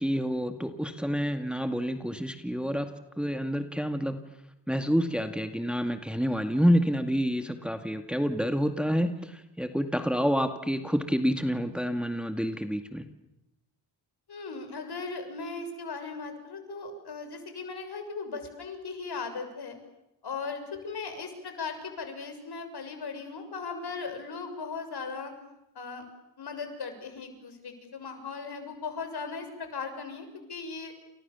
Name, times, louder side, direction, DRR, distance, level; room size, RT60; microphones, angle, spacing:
voice 1, 0.0-2.9 3.2-4.2 4.7-13.1, equal, ahead, 7 dB, 2.1 m, -28 dB
voice 2, 14.3-19.8 20.2-25.3 25.8-26.0 26.4-30.9, left 4 dB, 65° left, 6 dB, 6.8 m, -38 dB
30.0 x 28.0 x 7.1 m, 0.88 s
cardioid pair, 80°, 42 cm